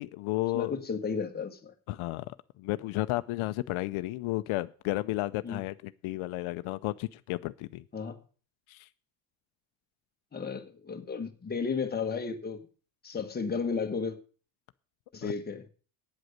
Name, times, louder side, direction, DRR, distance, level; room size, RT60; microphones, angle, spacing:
voice 1, 0.0-0.7 1.9-2.3 2.6-7.8 8.7-8.9 15.2-15.3, left 18 dB, 80° left, 0.6 m, -32 dB
voice 2, 0.5-1.7 5.4-5.6 7.9-8.2 10.3-12.6 13.0-14.2 15.1-15.6, left 5 dB, 20° left, 1.3 m, -33 dB
9.2 x 7.9 x 6.6 m
cardioid pair, 145°, 48 cm